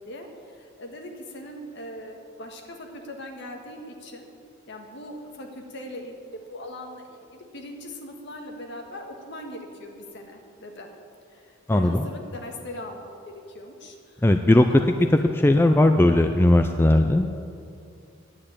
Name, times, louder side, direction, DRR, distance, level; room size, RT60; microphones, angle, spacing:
voice 1, 0.0-4.3 4.7-10.9 11.3-13.1 13.5-14.3 14.7-15.3, left 1 dB, 55° left, 3 dB, 1.6 m, -40 dB
voice 2, 11.7-12.0 14.2-14.7 15.0-17.3, left 1 dB, 10° left, 6 dB, 0.4 m, -18 dB
9.9 x 8.9 x 8.7 m, 2.4 s
head